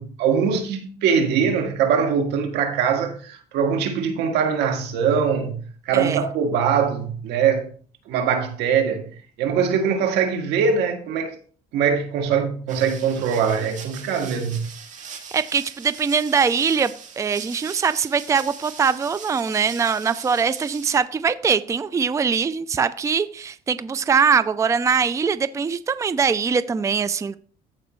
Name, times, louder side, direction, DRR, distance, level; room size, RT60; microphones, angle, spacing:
voice 1, 0.0-7.7 8.1-9.1 9.4-11.4 11.7-14.7, right 6 dB, 85° right, 1.8 m, -22 dB
sound 1, 12.7-21.0, right 6 dB, 45° right, 1.9 m, -41 dB
voice 2, 15.3-27.4, right 6 dB, 20° right, 0.4 m, -22 dB
15.0 x 5.1 x 3.1 m
cardioid pair, 110°, 17 cm